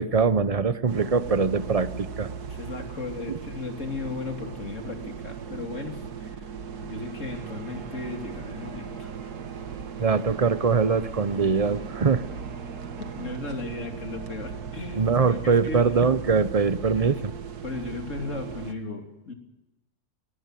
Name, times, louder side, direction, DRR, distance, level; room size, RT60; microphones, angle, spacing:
voice 1, 0.0-2.3 3.3-3.4 10.0-12.2 15.0-17.3, right 5 dB, 35° right, 14 dB, 0.6 m, -23 dB
sound 1, 0.9-18.7, right 6 dB, 80° right, 1.9 m, -38 dB
voice 2, 2.5-6.5 6.8-9.1 13.0-16.1 16.9-17.2 17.6-19.3, left 3 dB, 50° left, 4 dB, 3.3 m, -36 dB
Church bell, 6.1-13.4, right 5 dB, 55° right, 1.9 m, -47 dB
19.5 x 19.0 x 9.2 m, 0.95 s
omnidirectional pair, 1.6 m